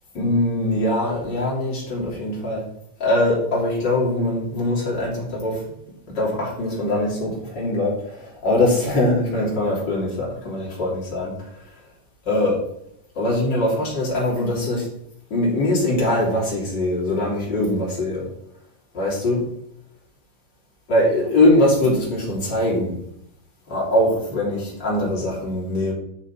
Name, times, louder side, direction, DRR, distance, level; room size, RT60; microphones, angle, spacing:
voice 1, 0.1-2.7 3.0-5.6 6.1-11.3 11.6-11.7 12.2-12.6 13.1-14.9 15.3-18.3 18.9-19.5 20.9-23.0 23.7-25.9, left 1 dB, 25° left, -5 dB, 2.8 m, -22 dB
9.6 x 5.9 x 4.4 m, 0.77 s
omnidirectional pair, 5.8 m